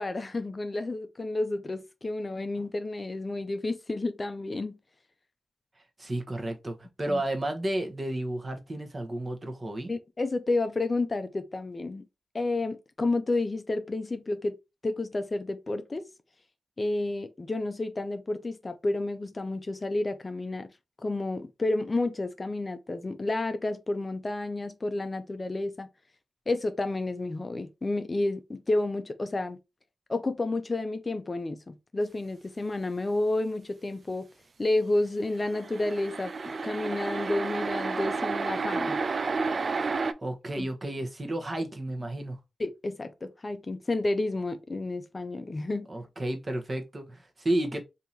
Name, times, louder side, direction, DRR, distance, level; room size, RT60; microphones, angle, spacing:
voice 1, 0.0-4.8 7.1-7.2 9.9-12.1 12.3-14.6 14.8-16.0 16.8-20.7 21.0-25.9 26.5-29.6 30.1-34.3 34.6-39.0 40.6-40.7 42.6-45.9, left 2 dB, 35° left, 0.4 m, -30 dB
voice 2, 6.0-9.9 40.2-42.4 45.9-47.8, right 1 dB, 35° right, 1.0 m, -32 dB
sound 1, 35.4-40.1, right 4 dB, 55° right, 0.3 m, -31 dB
2.9 x 2.7 x 3.8 m
cardioid pair, 60°, 0 cm